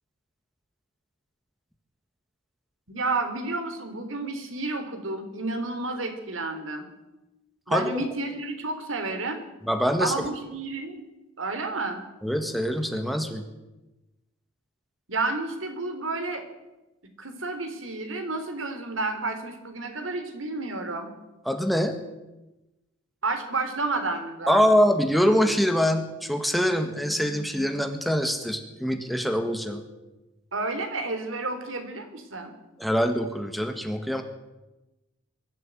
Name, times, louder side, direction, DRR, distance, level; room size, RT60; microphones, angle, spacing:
voice 1, 2.9-6.9 7.7-9.4 10.0-11.0 11.4-12.0 15.1-16.4 17.2-21.1 23.2-24.6 30.5-32.5, right 3 dB, 80° right, 7 dB, 3.6 m, -31 dB
voice 2, 7.7-8.0 9.6-10.1 12.2-13.4 21.5-22.0 24.5-29.8 32.8-34.2, equal, ahead, 6 dB, 1.7 m, -24 dB
22.5 x 12.5 x 9.2 m, 1.0 s
head